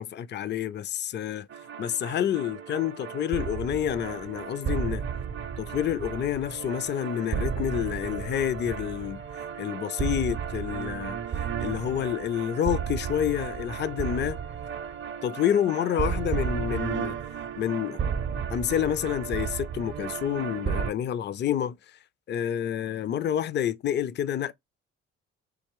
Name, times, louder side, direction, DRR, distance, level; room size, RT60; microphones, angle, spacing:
voice 1, 0.0-1.5 1.8-5.1 5.6-9.2 9.6-11.2 11.6-14.4 15.2-17.2 17.6-18.0 18.5-22.0 22.3-24.5, left 10 dB, 35° left, 0.4 m, -28 dB
sound 1, 1.5-20.9, right 7 dB, 40° right, 0.5 m, -33 dB
3.7 x 3.0 x 2.9 m
supercardioid pair, 60°, 30 cm